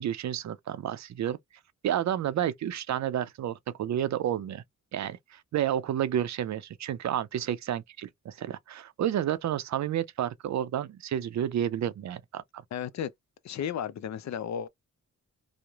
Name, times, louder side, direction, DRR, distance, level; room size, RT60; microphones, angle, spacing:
voice 1, 0.0-1.4 1.8-4.6 4.9-12.6, right 10 dB, 65° right, 0.4 m, -30 dB
voice 2, 12.7-13.1 13.4-14.7, left 9 dB, 65° left, 0.5 m, -33 dB
3.0 x 2.0 x 2.3 m
cardioid pair, 70°, 30 cm